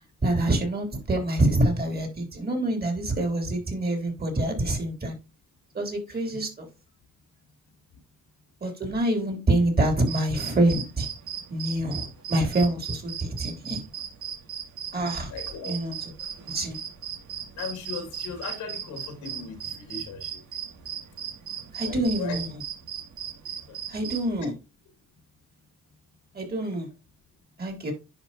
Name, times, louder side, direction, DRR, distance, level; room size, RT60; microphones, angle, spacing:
voice 1, 0.2-5.1 5.7-6.7 8.6-11.1 11.5-13.8 14.9-15.3 15.6-16.0 16.5-16.8 21.7-22.5 23.9-24.5 26.3-26.9 27.6-27.9, right 1 dB, 30° right, 3.3 m, -26 dB
sound 1, 10.1-24.3, right 9 dB, 75° right, 2.2 m, -37 dB
voice 2, 15.3-15.7 17.6-20.3 21.8-22.4, left 5 dB, 90° left, 2.4 m, -37 dB
10.5 x 4.8 x 2.9 m
cardioid pair, 90°, 30 cm